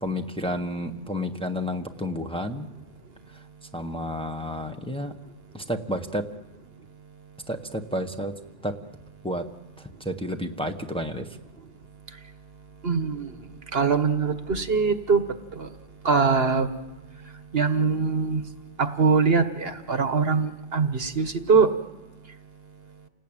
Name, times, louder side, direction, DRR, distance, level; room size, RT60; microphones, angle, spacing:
voice 1, 0.0-2.7 3.7-5.1 5.5-6.3 7.5-8.3 8.6-8.7 9.2-9.5 9.8-11.3, equal, 5° left, 4 dB, 1.4 m, -30 dB
voice 2, 12.8-13.3 13.7-15.2 15.6-15.7 16.0-16.7 17.5-18.4 18.8-21.7, right 5 dB, 60° right, 9 dB, 1.6 m, -22 dB
29.5 x 18.5 x 9.0 m, 1.1 s
omnidirectional pair, 1.2 m